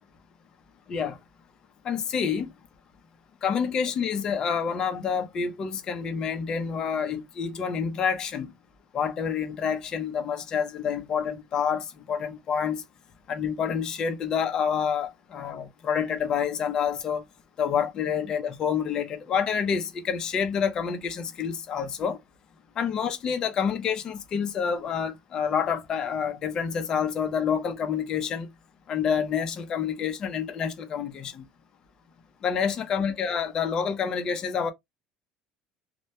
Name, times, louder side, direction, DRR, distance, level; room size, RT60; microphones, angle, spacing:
voice 1, 1.8-2.5 3.4-8.5 8.9-12.8 13.3-17.2 17.6-22.2 22.8-28.5 28.9-31.4 32.4-34.7, left 7 dB, 35° left, 0.5 m, -28 dB
2.2 x 2.1 x 2.8 m
cardioid pair, 150°, 2 cm